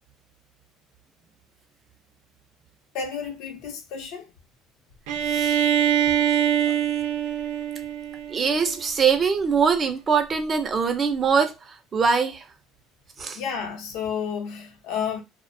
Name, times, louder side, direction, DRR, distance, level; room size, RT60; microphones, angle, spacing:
voice 1, 2.9-4.3 13.3-15.2, left 6 dB, 70° left, 0.6 m, -31 dB
Bowed string instrument, 5.1-8.8, right 10 dB, 85° right, 0.5 m, -24 dB
voice 2, 8.3-11.5 11.9-12.4 13.2-13.4, right 6 dB, 30° right, 0.3 m, -22 dB
2.5 x 2.0 x 2.4 m
cardioid pair, 145°, 0 cm